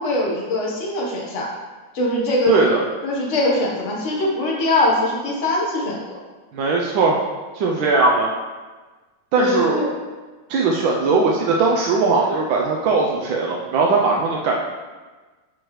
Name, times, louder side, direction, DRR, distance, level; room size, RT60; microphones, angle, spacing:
voice 1, 0.0-1.5 1.9-2.5 3.0-6.0 9.4-9.9, left 1 dB, 45° left, -3 dB, 1.5 m, -22 dB
voice 2, 2.5-2.8 6.5-7.2 7.5-8.3 9.3-9.8 10.5-14.6, right 3 dB, 90° right, -2 dB, 1.5 m, -19 dB
10.0 x 4.6 x 3.1 m, 1.3 s
omnidirectional pair, 2.1 m